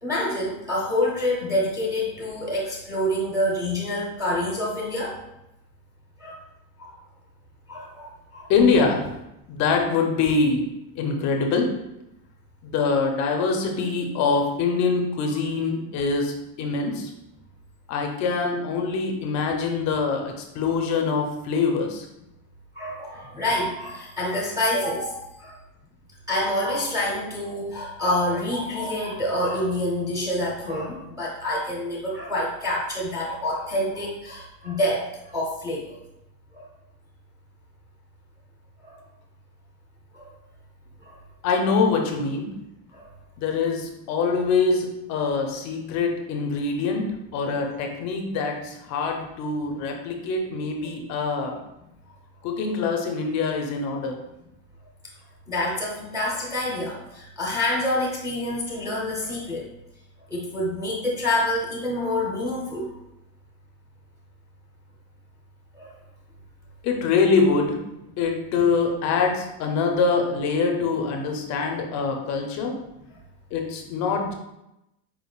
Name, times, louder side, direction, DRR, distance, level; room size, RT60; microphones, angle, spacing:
voice 1, 0.0-5.2 6.2-6.4 6.8-6.9 7.7-8.5 19.9-20.0 22.7-25.6 26.3-36.0 36.5-36.6 38.8-39.0 40.1-40.3 41.0-41.2 42.9-43.1 55.5-59.7 60.3-62.9 65.7-65.9, left 1 dB, 5° right, -4 dB, 0.8 m, -27 dB
voice 2, 8.5-9.2 9.5-10.6 11.0-11.7 12.6-17.1 17.9-22.1 41.4-42.5 43.4-47.1 47.3-51.6 52.4-54.2 66.8-67.8 68.2-72.8 73.5-74.3, left 4 dB, 35° left, 3 dB, 0.5 m, -24 dB
4.6 x 3.5 x 2.3 m, 0.88 s
cardioid pair, 155°, 48 cm